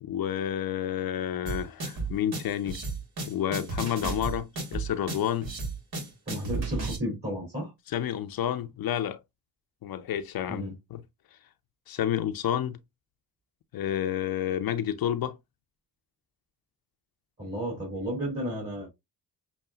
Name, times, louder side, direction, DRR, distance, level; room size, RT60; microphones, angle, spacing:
voice 1, 0.0-2.8 3.3-5.6 7.9-9.2 9.8-10.6 10.9-11.0 11.9-12.7 13.7-15.4, left 10 dB, 65° left, 0.6 m, -30 dB
sound 1, 1.4-7.0, right 3 dB, 65° right, 1.8 m, -33 dB
voice 2, 6.3-7.7 10.5-10.7 17.4-18.9, equal, 35° right, 3.0 m, -33 dB
6.9 x 2.3 x 2.3 m
supercardioid pair, 45°, 39 cm